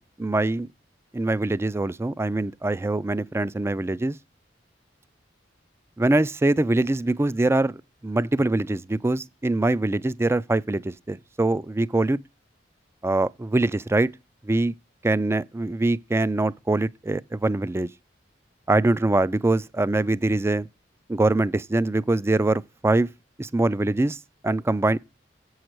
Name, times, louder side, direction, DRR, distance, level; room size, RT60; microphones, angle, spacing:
voice 1, 0.2-0.7 1.1-4.2 6.0-12.2 13.0-14.1 14.4-14.7 15.0-17.9 18.7-20.7 21.1-23.1 23.4-24.2 24.4-25.0, right 2 dB, 15° right, 0.3 m, -23 dB
8.1 x 6.3 x 4.6 m
head